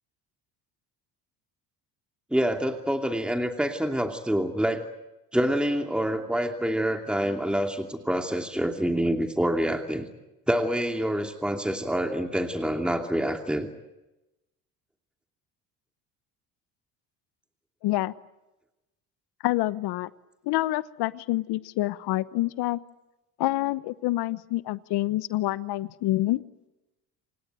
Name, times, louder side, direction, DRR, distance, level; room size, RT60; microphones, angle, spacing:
voice 1, 2.3-4.8 5.3-10.1 10.5-13.7, equal, ahead, 4 dB, 2.7 m, -26 dB
voice 2, 17.8-18.1 19.4-20.1 20.5-22.8 23.4-26.4, left 17 dB, 70° left, 17 dB, 1.1 m, -27 dB
28.0 x 17.5 x 9.1 m, 0.98 s
supercardioid pair, 80°, 41 cm